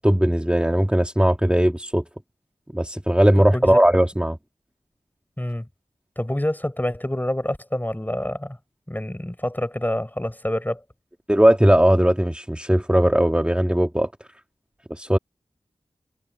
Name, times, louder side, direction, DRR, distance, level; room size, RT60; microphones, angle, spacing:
voice 1, 0.0-2.0 2.7-4.4 11.3-14.1 14.9-15.2, right 1 dB, 10° right, 2.1 m, -18 dB
voice 2, 6.2-8.6 8.9-10.8, left 1 dB, 15° left, 5.0 m, -27 dB
cardioid pair, 40°, 13 cm